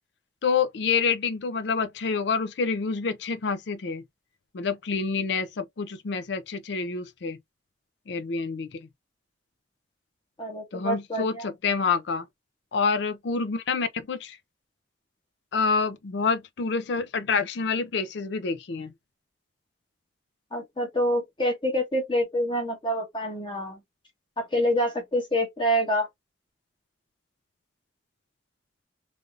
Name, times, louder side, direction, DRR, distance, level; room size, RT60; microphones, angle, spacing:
voice 1, 0.4-4.0 4.5-7.4 8.1-8.9 10.7-12.3 12.7-14.4 15.5-18.9, left 5 dB, 65° left, 0.4 m, -27 dB
voice 2, 10.4-11.5 20.5-23.8 24.4-26.1, equal, 25° left, 0.8 m, -26 dB
3.3 x 2.4 x 2.4 m
head